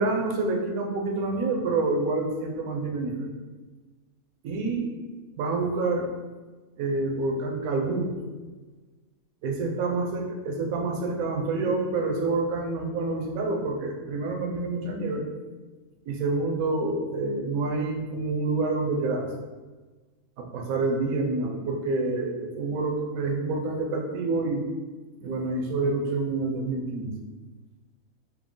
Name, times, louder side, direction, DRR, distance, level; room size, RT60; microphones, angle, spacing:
voice 1, 0.0-3.3 4.4-4.9 5.4-6.1 6.8-8.2 9.4-15.3 16.1-19.3 20.4-24.7 25.2-27.1, right 3 dB, 75° right, 1 dB, 1.1 m, -27 dB
4.6 x 2.0 x 3.6 m, 1.3 s
omnidirectional pair, 1.5 m